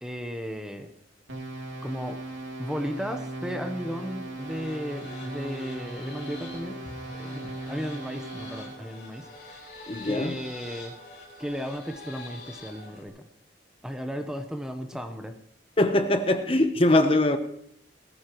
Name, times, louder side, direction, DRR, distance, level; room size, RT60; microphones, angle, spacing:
voice 1, 0.0-0.9 1.8-2.2 2.6-6.8 7.1-9.7 10.0-11.0 11.4-13.3 13.8-15.3, equal, 5° right, 6 dB, 0.9 m, -35 dB
sound 1, 1.3-8.8, right 1 dB, 80° right, 2.8 m, -38 dB
sound 2, 4.3-13.1, left 2 dB, 55° left, 5.7 m, -45 dB
voice 2, 9.9-10.3 15.8-17.4, left 1 dB, 30° left, 8 dB, 0.9 m, -22 dB
19.5 x 14.5 x 3.1 m, 0.68 s
head